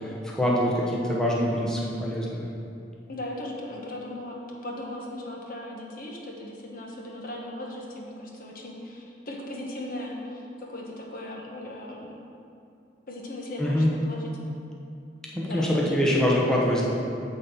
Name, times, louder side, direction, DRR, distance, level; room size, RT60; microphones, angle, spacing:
voice 1, 0.0-2.5 13.6-13.9 15.3-16.9, equal, 5° left, -5 dB, 1.1 m, -24 dB
voice 2, 3.1-12.1 13.1-14.4 15.5-16.3, left 1 dB, 55° left, -1 dB, 1.2 m, -38 dB
9.2 x 4.3 x 7.3 m, 2.6 s
head